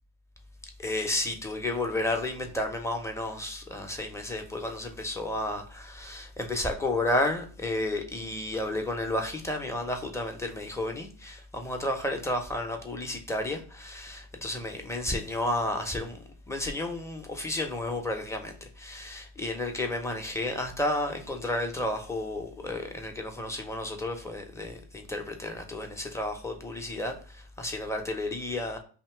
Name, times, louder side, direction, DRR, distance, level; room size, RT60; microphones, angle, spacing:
voice 1, 0.8-28.8, left 1 dB, 5° left, 0.7 m, -32 dB
2.8 x 2.8 x 4.4 m
cardioid pair, 110°, 38 cm